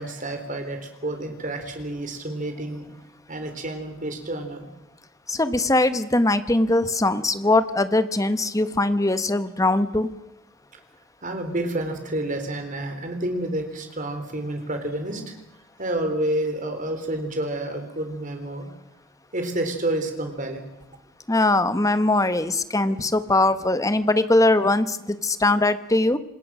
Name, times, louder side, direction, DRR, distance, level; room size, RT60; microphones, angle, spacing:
voice 1, 0.0-2.9 3.3-4.7 11.2-15.4 15.8-18.7 19.3-20.7, right 1 dB, 40° right, 6 dB, 3.8 m, -29 dB
voice 2, 5.3-10.1 21.3-26.2, left 2 dB, 15° left, 12 dB, 1.1 m, -21 dB
27.0 x 20.5 x 6.2 m, 0.92 s
head